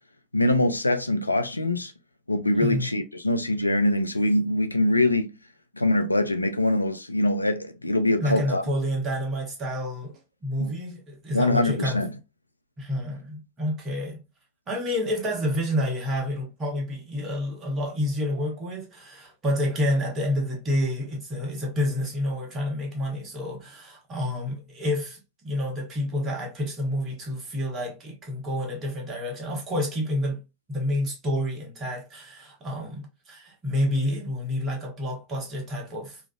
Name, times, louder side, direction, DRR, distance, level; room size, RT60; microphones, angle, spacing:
voice 1, 0.3-1.9 2.3-5.3 5.8-8.6 10.6-10.7 11.3-12.1, left 1 dB, 85° left, 0.3 m, -23 dB
voice 2, 2.5-2.9 8.2-10.1 10.4-12.0 12.8-14.2 14.7-25.2 25.4-30.4 30.7-36.2, left 1 dB, 30° right, 1.1 m, -29 dB
3.1 x 2.4 x 2.3 m
figure-of-eight pair, 90°, 0 cm